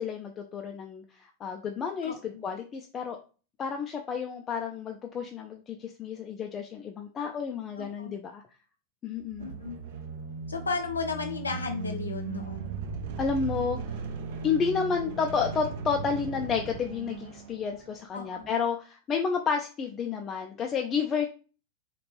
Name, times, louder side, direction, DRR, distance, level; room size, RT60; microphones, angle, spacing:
voice 1, 0.0-3.2 3.6-8.4 9.0-9.5 13.2-13.8 14.4-21.3, left 6 dB, 25° left, 3 dB, 0.3 m, -31 dB
voice 2, 2.0-2.4 7.7-8.2 9.4-9.8 10.5-12.7 18.1-18.5, left 4 dB, 75° left, 4 dB, 0.6 m, -34 dB
sound 1, 9.2-17.9, right 4 dB, 55° right, 0.5 m, -37 dB
3.0 x 2.4 x 3.0 m, 0.36 s
figure-of-eight pair, 90°, 0 cm